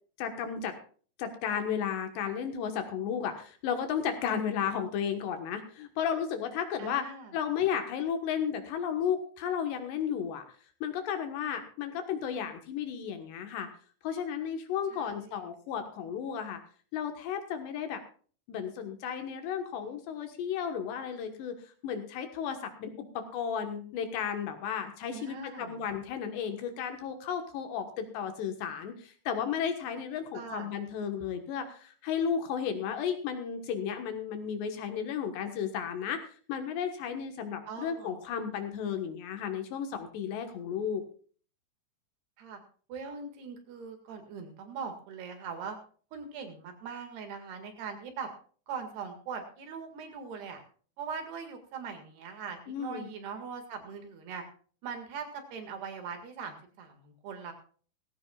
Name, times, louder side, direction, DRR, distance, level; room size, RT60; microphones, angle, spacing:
voice 1, 0.2-0.8 1.2-7.0 7.3-10.5 10.8-13.7 14.0-16.6 16.9-18.0 18.5-36.2 36.5-41.0 52.7-53.1, left 8 dB, 75° left, 6 dB, 3.4 m, -33 dB
voice 2, 6.8-7.3 14.9-15.3 25.1-25.8 30.3-30.7 37.7-38.2 42.4-42.6 42.9-45.8 46.1-48.3 48.7-50.6 51.0-54.5 54.8-57.5, right 5 dB, 65° right, 6 dB, 3.9 m, -41 dB
19.0 x 16.0 x 2.4 m, 0.42 s
omnidirectional pair, 5.2 m